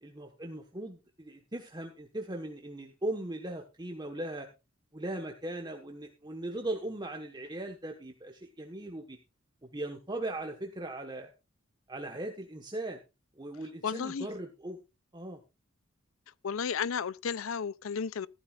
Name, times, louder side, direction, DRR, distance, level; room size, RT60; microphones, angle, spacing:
voice 1, 0.0-4.5 4.9-9.2 9.6-11.3 11.9-13.0 13.3-14.8 15.1-15.4, right 1 dB, 20° right, 1.3 m, -39 dB
voice 2, 13.8-14.3 16.4-18.3, left 6 dB, 80° left, 0.5 m, -33 dB
14.5 x 12.5 x 2.5 m
head